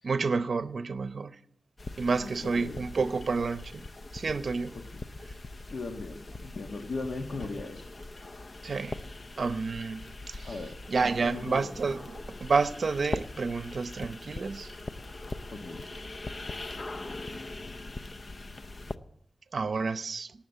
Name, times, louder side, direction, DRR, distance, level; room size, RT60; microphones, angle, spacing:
voice 1, 0.0-1.4 2.0-3.9 4.1-4.7 8.6-9.0 9.4-10.5 10.9-14.7 19.5-20.3, right 4 dB, 60° right, 0.8 m, -30 dB
sound 1, 1.8-19.0, left 2 dB, 45° left, 0.6 m, -41 dB
voice 2, 2.2-2.8 4.7-5.1 5.7-7.8 10.4-10.8 11.2-11.7 15.5-15.9, left 3 dB, 70° left, 1.3 m, -38 dB
18.5 x 7.2 x 8.0 m
wide cardioid pair, 105°, 0 cm